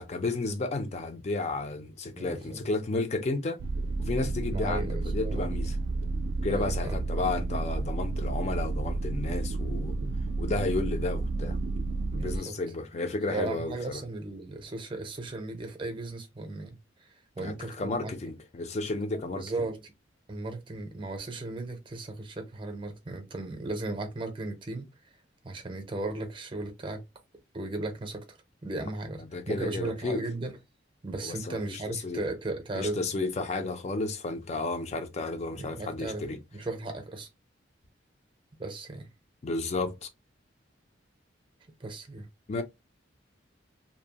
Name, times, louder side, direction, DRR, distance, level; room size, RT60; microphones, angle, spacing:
voice 1, 0.0-3.6 4.0-5.8 6.4-10.0 10.4-11.6 12.1-14.0 17.4-19.4 29.2-30.2 31.2-32.2 32.7-36.4 39.4-40.1 42.5-42.6, left 3 dB, 35° left, 0.4 m, -32 dB
voice 2, 2.1-2.6 4.5-5.5 6.5-7.0 10.0-10.2 12.1-12.6 13.3-18.1 19.3-19.9 20.3-24.9 25.4-27.0 27.5-28.4 28.6-30.5 31.0-33.0 35.5-37.3 38.6-39.1 41.8-42.3, right 2 dB, 25° right, 0.6 m, -36 dB
sound 1, 3.6-12.4, right 3 dB, 65° right, 0.3 m, -31 dB
2.7 x 2.1 x 2.8 m
head